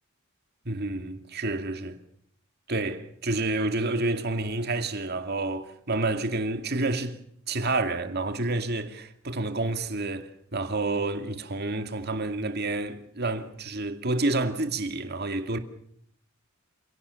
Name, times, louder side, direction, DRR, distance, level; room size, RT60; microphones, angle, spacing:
voice 1, 0.7-2.0 2.7-7.2 7.5-15.6, right 2 dB, 50° right, 2.3 m, -29 dB
28.5 x 17.5 x 7.0 m
head